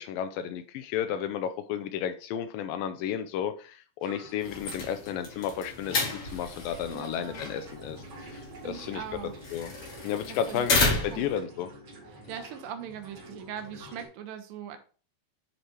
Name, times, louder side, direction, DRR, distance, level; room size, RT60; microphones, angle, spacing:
voice 1, 0.0-9.0 9.5-9.7 10.0-11.7, left 9 dB, 80° left, 9 dB, 2.1 m, -33 dB
sound 1, 4.0-14.1, right 1 dB, 45° right, 1.4 m, -48 dB
sound 2, 4.4-11.4, left 3 dB, 50° left, 2.0 m, -32 dB
voice 2, 6.9-7.5 8.6-9.3 10.3-11.3 12.1-14.8, right 9 dB, 80° right, 7 dB, 2.3 m, -41 dB
7.9 x 3.2 x 4.3 m, 0.38 s
omnidirectional pair, 4.2 m